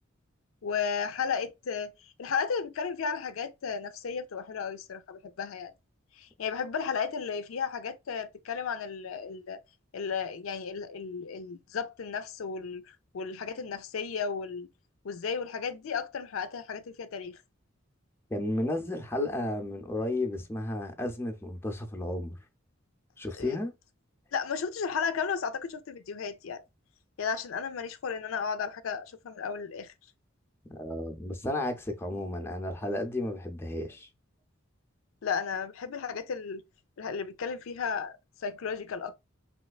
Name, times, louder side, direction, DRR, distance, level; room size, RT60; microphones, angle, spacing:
voice 1, 0.6-1.9 2.2-5.7 6.2-9.6 9.9-12.8 13.1-14.7 15.0-17.4 23.4-23.6 24.3-26.6 27.2-29.9 35.2-36.6 37.0-39.1, left 6 dB, 90° left, 0.4 m, -34 dB
voice 2, 18.3-22.3 23.2-23.7 30.7-34.1, left 1 dB, 10° left, 0.5 m, -33 dB
3.2 x 3.0 x 2.3 m
head